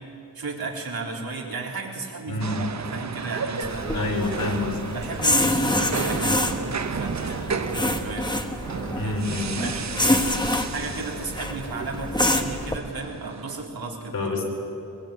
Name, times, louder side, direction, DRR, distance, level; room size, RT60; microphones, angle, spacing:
voice 1, 0.3-4.1 4.9-8.3 9.0-10.3 10.7-14.4, right 3 dB, 80° right, -1 dB, 4.2 m, -34 dB
voice 2, 2.3-2.7 3.9-4.8 8.9-9.7 14.1-14.4, left 2 dB, 65° left, 1 dB, 5.0 m, -27 dB
sound 1, 2.4-13.7, right 5 dB, 50° right, 1.0 m, -33 dB
sound 2, 3.6-12.8, left 1 dB, 10° left, 1.5 m, -27 dB
24.0 x 22.0 x 9.2 m, 2.8 s
wide cardioid pair, 145°, 36 cm